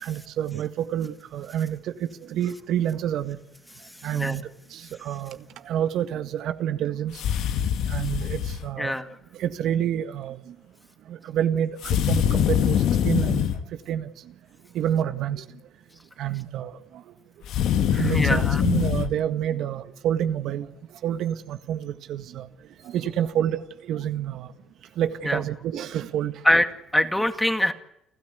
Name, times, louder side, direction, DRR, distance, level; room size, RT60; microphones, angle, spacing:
voice 1, 0.0-1.9 2.2-3.4 4.0-5.4 5.6-7.2 7.9-9.0 9.4-10.5 11.1-13.4 13.9-14.1 14.7-15.4 16.2-16.8 17.9-20.7 21.0-22.5 22.8-24.5 25.0-26.4, right 10 dB, 65° right, 9 dB, 1.7 m, -28 dB
sound 1, 7.1-8.6 11.8-13.6 17.4-19.1, left 9 dB, 70° left, 1.8 m, -23 dB
voice 2, 8.8-9.2 17.9-18.6 25.2-25.4 26.4-27.7, left 1 dB, 5° left, 8 dB, 2.2 m, -24 dB
30.0 x 13.0 x 9.4 m, 0.79 s
cardioid pair, 110°, 0 cm